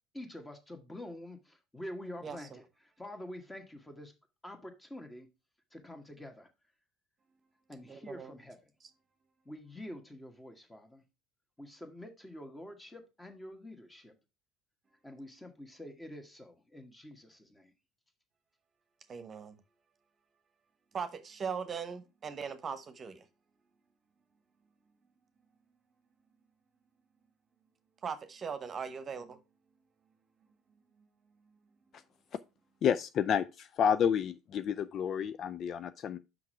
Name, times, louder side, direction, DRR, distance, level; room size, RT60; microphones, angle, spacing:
voice 1, 0.1-4.1 4.4-5.3 5.7-6.5 7.7-8.6 9.5-11.0 11.6-14.1 15.0-17.7, left 1 dB, 10° left, 1.6 m, -47 dB
voice 2, 2.2-2.6 7.9-8.4 19.1-19.6 20.9-23.2 28.0-29.4, right 6 dB, 35° right, 1.0 m, -39 dB
voice 3, 32.8-36.2, left 8 dB, 45° left, 0.4 m, -30 dB
5.9 x 5.3 x 4.7 m
figure-of-eight pair, 65°, 0 cm